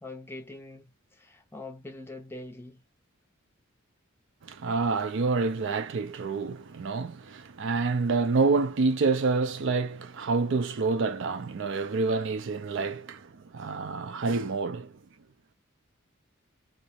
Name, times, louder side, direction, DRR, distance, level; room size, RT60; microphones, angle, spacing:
voice 1, 0.0-2.8, left 2 dB, 10° left, 0.5 m, -43 dB
voice 2, 4.4-14.9, right 4 dB, 60° right, 0.4 m, -28 dB
2.4 x 2.1 x 2.7 m
head